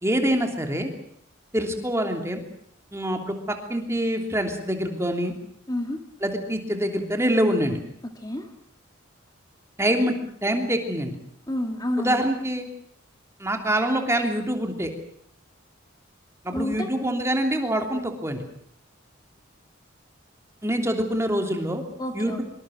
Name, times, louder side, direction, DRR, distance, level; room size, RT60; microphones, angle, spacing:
voice 1, 0.0-0.9 1.5-2.4 2.9-5.3 6.2-7.8 9.8-10.1 10.4-11.2 12.0-12.7 13.4-14.9 16.4-18.4 20.6-21.8 22.1-22.4, right 1 dB, 15° right, 4 dB, 3.0 m, -25 dB
voice 2, 5.7-6.0 8.2-8.5 11.5-12.3 16.5-16.9 22.0-22.4, left 1 dB, 20° left, 4 dB, 1.9 m, -29 dB
25.5 x 24.0 x 6.4 m, 0.67 s
head